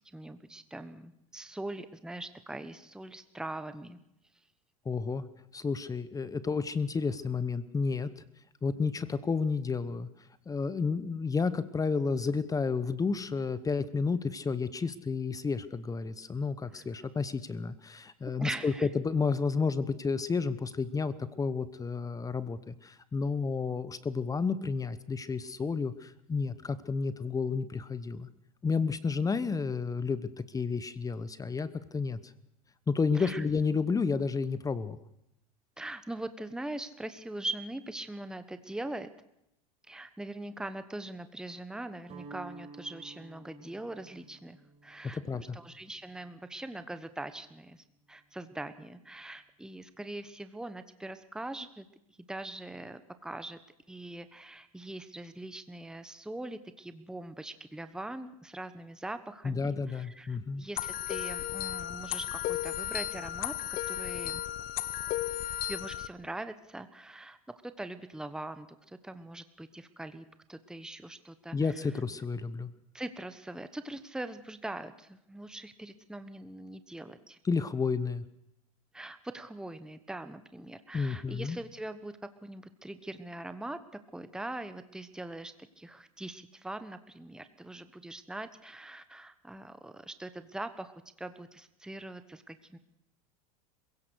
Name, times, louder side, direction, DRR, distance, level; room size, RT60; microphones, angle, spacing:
voice 1, 0.0-4.0 16.7-16.8 18.4-18.9 33.1-33.4 35.8-39.1 39.9-44.6 44.8-51.8 52.2-53.6 53.9-63.6 63.9-64.4 65.7-71.8 72.9-77.4 78.9-82.1 82.4-92.8, right 1 dB, 5° right, 11 dB, 1.2 m, -42 dB
voice 2, 4.8-5.3 5.5-8.1 8.6-10.1 10.5-28.3 28.6-32.3 32.9-35.0 45.1-45.6 59.4-60.6 71.5-72.7 77.4-78.2 80.9-81.6, left 4 dB, 20° left, 15 dB, 1.1 m, -31 dB
Guitar, 42.0-48.1, right 4 dB, 35° right, 5.3 m, -54 dB
sound 1, 60.8-66.1, left 13 dB, 55° left, 1.3 m, -34 dB
27.0 x 16.5 x 6.4 m, 0.82 s
hypercardioid pair, 95°, 18 cm